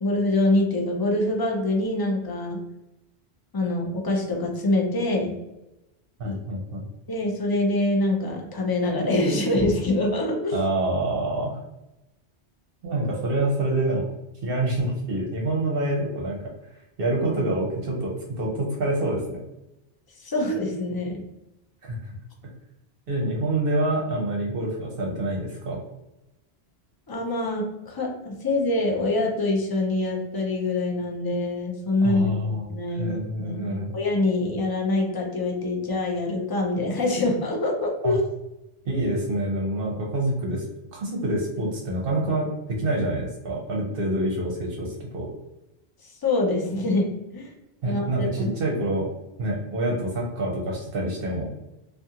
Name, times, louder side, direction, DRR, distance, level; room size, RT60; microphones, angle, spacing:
voice 1, 0.0-2.6 3.5-5.4 6.2-6.4 7.1-10.5 20.2-21.2 27.1-33.6 33.9-38.2 46.2-47.1 47.3-47.5 47.8-48.5, left 2 dB, 35° left, 0 dB, 0.3 m, -25 dB
voice 2, 6.2-6.8 10.5-11.6 12.8-14.1 14.4-16.4 17.0-19.4 21.8-22.1 23.1-25.8 32.0-33.9 38.0-38.2 38.8-40.6 40.9-45.3 47.8-49.1 49.4-51.5, right 1 dB, 65° right, -1 dB, 0.8 m, -27 dB
2.4 x 2.4 x 2.7 m, 0.92 s
omnidirectional pair, 1.1 m